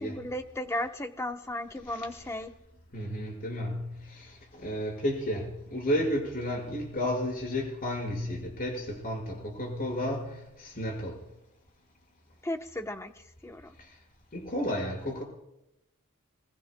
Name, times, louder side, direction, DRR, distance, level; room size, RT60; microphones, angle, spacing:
voice 1, 0.0-2.5 12.4-13.1 13.4-13.7, left 1 dB, 15° left, 6 dB, 0.9 m, -35 dB
voice 2, 2.9-11.2 13.8-13.9 14.3-15.2, equal, 45° left, -1 dB, 5.2 m, -32 dB
26.0 x 21.0 x 2.2 m, 0.89 s
head